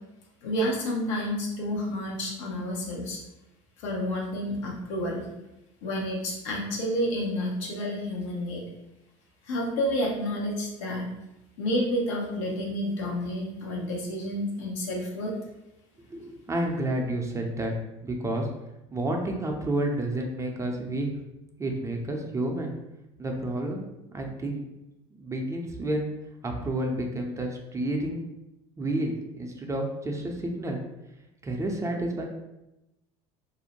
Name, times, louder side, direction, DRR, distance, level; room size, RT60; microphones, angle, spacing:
voice 1, 0.4-3.2 3.8-5.3 5.8-8.6 9.4-11.1 11.6-15.3, equal, 80° left, -1 dB, 0.7 m, -30 dB
voice 2, 16.1-17.7 18.0-18.5 18.9-21.1 21.6-22.7 23.2-23.8 24.1-24.7 25.2-26.1 26.4-28.2 28.8-30.8 31.4-32.3, right 1 dB, 20° right, 2 dB, 0.5 m, -30 dB
2.5 x 2.0 x 2.9 m, 0.91 s
hypercardioid pair, 80°, 16 cm